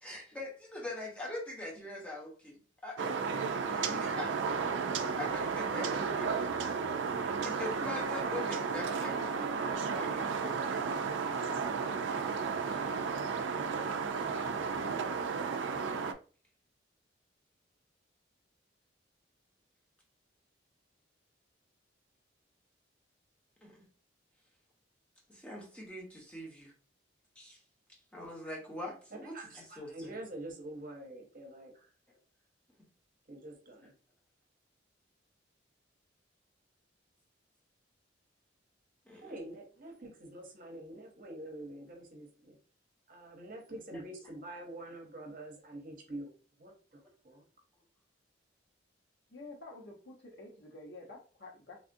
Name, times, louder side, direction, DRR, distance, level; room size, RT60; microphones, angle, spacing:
voice 1, 0.0-2.6 2.8-4.7 5.2-6.7 7.4-11.1 12.7-12.8 23.6-23.8 25.3-26.7 27.4-27.6 28.1-30.2 39.1-39.3, left 2 dB, 5° left, -2 dB, 0.8 m, -43 dB
sound 1, 3.0-16.1, right 5 dB, 80° right, 0.4 m, -33 dB
voice 2, 29.1-31.9 33.3-33.9 39.1-42.6 43.1-46.3 46.6-47.4, right 1 dB, 45° right, 2 dB, 0.8 m, -46 dB
voice 3, 49.3-51.8, left 2 dB, 65° left, -1 dB, 1.0 m, -49 dB
3.3 x 2.4 x 2.5 m, 0.37 s
head